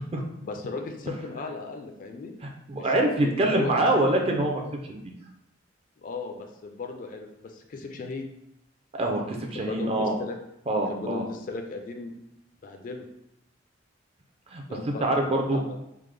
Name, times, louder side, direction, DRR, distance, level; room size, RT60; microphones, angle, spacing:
voice 1, 0.4-2.3 2.7-4.0 6.0-8.2 9.5-10.4 10.9-12.1 12.6-13.1 14.7-15.8, left 3 dB, 45° left, 4 dB, 0.3 m, -36 dB
voice 2, 2.7-4.6 4.9-5.0 8.9-10.1 10.7-11.3 14.5-15.6, right 1 dB, 30° right, 2 dB, 0.4 m, -25 dB
3.5 x 2.1 x 3.2 m, 0.83 s
head